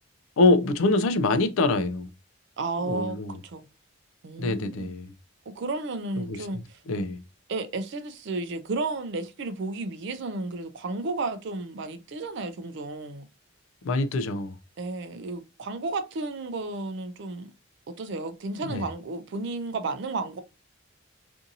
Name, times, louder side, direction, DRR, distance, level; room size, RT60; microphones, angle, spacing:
voice 1, 0.4-2.1 2.8-3.4 4.4-5.1 6.3-7.2 13.8-14.5 18.7-18.8, left 2 dB, 75° left, 0.4 m, -25 dB
voice 2, 2.6-3.6 4.2-4.9 5.5-6.8 7.5-13.3 14.8-17.5 17.9-20.4, right 3 dB, 55° right, 0.4 m, -33 dB
2.6 x 2.6 x 2.5 m
head